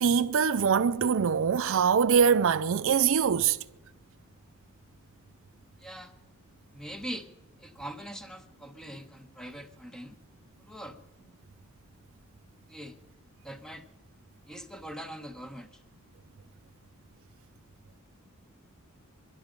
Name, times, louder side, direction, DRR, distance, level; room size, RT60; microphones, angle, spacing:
voice 1, 0.0-3.6, right 6 dB, 60° right, 0.4 m, -23 dB
voice 2, 5.8-6.1 6.7-7.3 7.6-10.2 10.6-11.0 12.7-13.0 13.4-13.9 14.5-15.8, equal, 5° left, 1.0 m, -42 dB
23.0 x 11.5 x 5.1 m
head